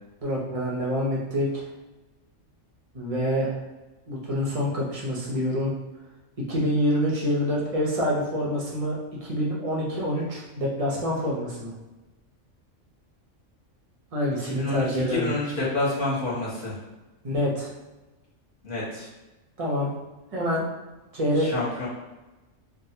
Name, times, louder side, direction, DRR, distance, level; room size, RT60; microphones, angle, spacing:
voice 1, 0.2-1.7 2.9-3.6 4.1-5.8 6.5-9.0 9.2-11.7 14.1-15.3 17.2-17.7 19.6-19.9 20.3-20.6 21.1-21.5, equal, 35° right, -4 dB, 0.6 m, -26 dB
voice 2, 14.4-16.8 18.6-19.1 21.4-21.9, left 2 dB, 45° left, -8 dB, 1.2 m, -28 dB
3.3 x 2.2 x 2.7 m, 1.1 s
omnidirectional pair, 1.3 m